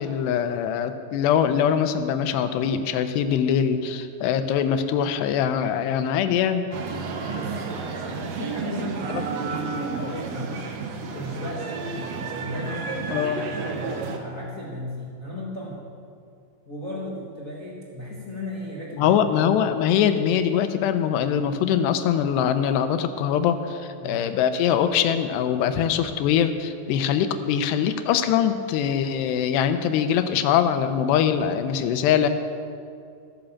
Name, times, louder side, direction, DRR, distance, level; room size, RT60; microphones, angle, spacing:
voice 1, 0.0-6.7 9.1-9.2 13.1-13.4 19.0-32.3, left 8 dB, 90° left, 9 dB, 2.9 m, -23 dB
sound 1, 6.7-14.2, right 4 dB, 90° right, 1.4 m, -31 dB
voice 2, 7.1-10.7 11.1-15.8 16.7-19.4 24.0-24.2 26.9-27.1, left 1 dB, 65° left, -4 dB, 0.8 m, -35 dB
14.5 x 10.5 x 7.2 m, 2.4 s
omnidirectional pair, 4.7 m